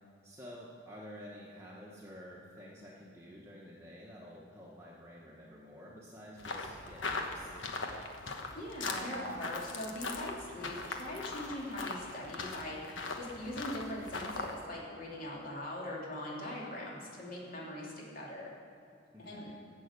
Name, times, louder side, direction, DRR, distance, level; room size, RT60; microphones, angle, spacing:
voice 1, 0.2-7.8 19.1-19.6, equal, 15° right, -5 dB, 1.2 m, -50 dB
sound 1, 6.4-14.6, left 3 dB, 80° left, 1.2 m, -40 dB
voice 2, 8.5-18.5 19.2-19.5, left 1 dB, 45° left, -4 dB, 3.0 m, -41 dB
14.5 x 6.4 x 8.2 m, 2.6 s
head